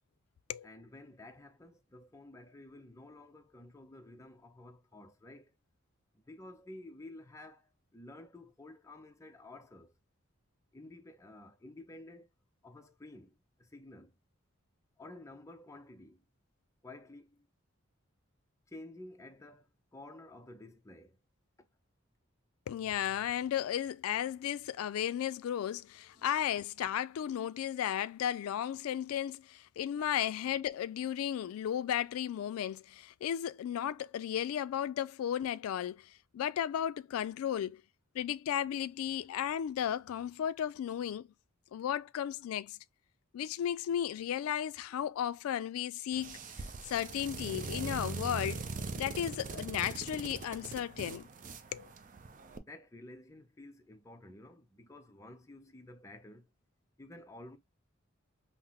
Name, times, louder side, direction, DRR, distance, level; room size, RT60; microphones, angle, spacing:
voice 1, 0.6-5.6 6.3-9.9 10.7-12.3 12.6-14.1 15.0-16.2 16.8-17.5 18.7-21.2 26.2-26.3 52.6-56.5 57.0-57.6, left 2 dB, 15° left, 0.5 m, -52 dB
voice 2, 22.7-37.8 38.1-41.3 41.7-42.8 43.3-48.6 48.9-51.3 51.7-51.9, left 10 dB, 90° left, 0.3 m, -34 dB
sound 1, 46.1-52.6, right 4 dB, 40° right, 0.5 m, -41 dB
5.7 x 2.0 x 2.8 m
head